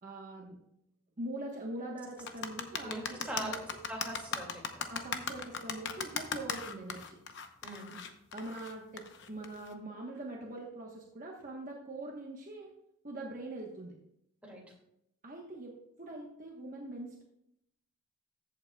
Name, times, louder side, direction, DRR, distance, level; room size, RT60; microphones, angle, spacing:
voice 1, 0.0-0.6 1.2-3.8 4.9-7.2 8.3-12.7 13.0-13.9 15.2-17.2, right 1 dB, 40° right, -1 dB, 1.2 m, -43 dB
sound 1, 2.2-9.7, left 6 dB, 55° left, 0.8 m, -38 dB
voice 2, 2.6-3.5 3.9-4.9 7.6-8.0 14.4-14.6, right 1 dB, 5° right, -3 dB, 2.2 m, -42 dB
14.5 x 8.2 x 2.3 m, 0.77 s
head